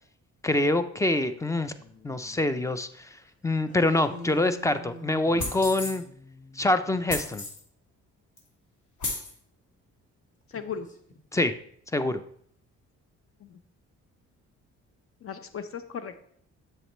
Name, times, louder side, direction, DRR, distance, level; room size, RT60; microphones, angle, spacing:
voice 1, 0.4-1.7 2.0-3.1 3.4-6.0 6.6-7.4 11.3-11.5 11.9-12.2, left 2 dB, 10° left, 11 dB, 0.5 m, -25 dB
sound 1, 1.8-3.2 3.6-7.1 10.5-11.2, left 1 dB, 25° left, 1.2 m, -47 dB
sound 2, 5.4-6.0 7.1-7.6 8.4-8.5 9.0-9.3, left 2 dB, 75° left, 1.9 m, -33 dB
voice 2, 10.5-10.9 13.4-13.6 15.2-16.2, left 7 dB, 45° left, 10 dB, 0.8 m, -36 dB
7.7 x 6.6 x 3.1 m, 0.64 s
cardioid pair, 90°, 30 cm